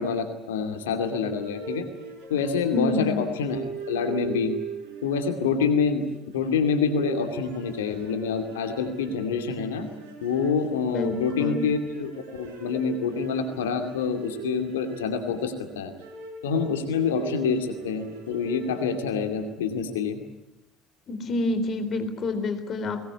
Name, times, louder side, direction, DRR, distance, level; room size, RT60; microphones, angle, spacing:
voice 1, 0.0-1.9 2.3-3.6 3.9-4.6 5.0-6.1 6.3-9.9 10.2-15.9 16.4-20.2, left 5 dB, 80° left, 6 dB, 2.5 m, -26 dB
sound 1, 1.0-19.5, right 4 dB, 75° right, 6.4 m, -40 dB
voice 2, 2.7-3.2 10.9-11.7 21.1-23.0, left 2 dB, 45° left, 9 dB, 3.9 m, -28 dB
22.0 x 19.0 x 9.8 m, 0.86 s
hypercardioid pair, 65°, 0 cm